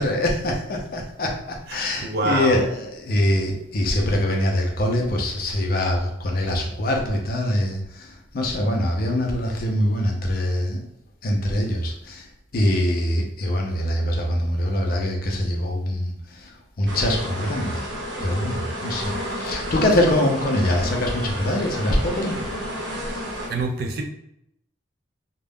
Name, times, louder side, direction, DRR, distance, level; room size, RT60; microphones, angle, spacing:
voice 1, 0.0-10.8 11.2-17.8 18.2-22.4, left 1 dB, 50° left, 1 dB, 0.5 m, -24 dB
voice 2, 2.0-2.6 23.5-24.0, right 2 dB, 55° right, 4 dB, 0.4 m, -24 dB
sound 1, 16.9-23.5, equal, 75° right, 0.8 m, -31 dB
2.3 x 2.1 x 3.3 m, 0.77 s
head